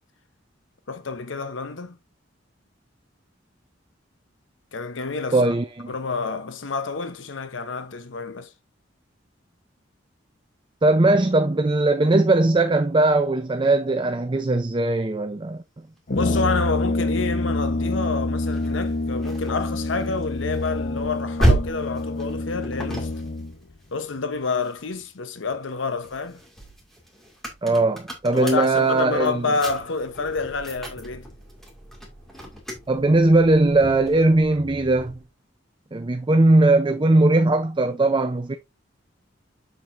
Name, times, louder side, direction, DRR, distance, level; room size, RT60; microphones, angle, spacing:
voice 1, 0.9-2.0 4.7-5.5 5.9-8.5 16.1-23.1 23.9-26.4 28.3-31.3, left 4 dB, 85° left, 0.8 m, -28 dB
voice 2, 5.3-5.9 10.8-15.6 27.6-29.5 32.9-35.2 35.9-38.6, right 2 dB, 25° right, 0.5 m, -19 dB
Brass instrument, 16.1-23.6, left 2 dB, 50° left, 0.9 m, -27 dB
sound 1, 18.5-25.1 25.5-35.3, right 1 dB, ahead, 2.0 m, -32 dB
7.4 x 6.5 x 2.5 m
head